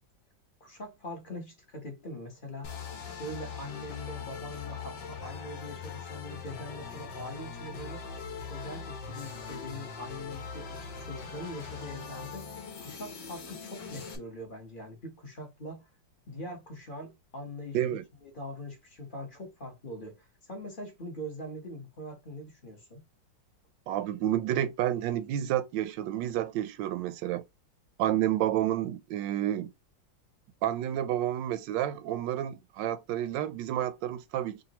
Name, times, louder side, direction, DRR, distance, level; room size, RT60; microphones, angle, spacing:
voice 1, 0.6-2.8 3.2-8.0 8.5-12.5 12.8-15.9 16.3-17.8 18.2-23.0, left 1 dB, 30° left, 1.1 m, -42 dB
sound 1, 2.6-14.2, left 5 dB, 70° left, 1.6 m, -41 dB
voice 2, 23.9-27.4 28.0-29.7 30.6-34.6, right 12 dB, 75° right, 1.2 m, -30 dB
5.0 x 2.6 x 2.9 m
omnidirectional pair, 2.0 m